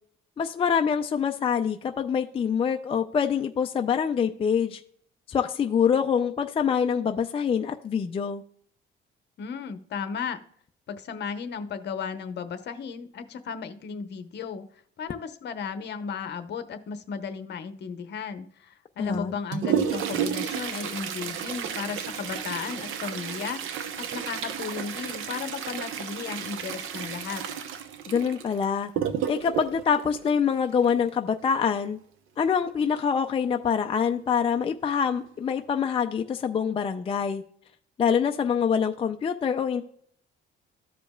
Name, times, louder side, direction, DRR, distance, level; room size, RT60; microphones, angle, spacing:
voice 1, 0.4-4.8 5.3-8.4 19.0-19.3 28.1-28.9 29.3-32.0 32.4-37.4 38.0-39.8, left 7 dB, 25° left, 5 dB, 0.4 m, -25 dB
voice 2, 9.4-10.4 10.9-14.7 15.0-23.9 24.1-27.5, left 6 dB, 55° left, 10 dB, 0.9 m, -35 dB
Toilet flush, 19.1-31.1 33.0-33.1 33.4-33.5 34.3-34.4 35.0-35.3 35.7-35.9, right 8 dB, 75° right, 0.8 m, -32 dB
14.5 x 5.1 x 2.3 m, 0.65 s
cardioid pair, 145°, 21 cm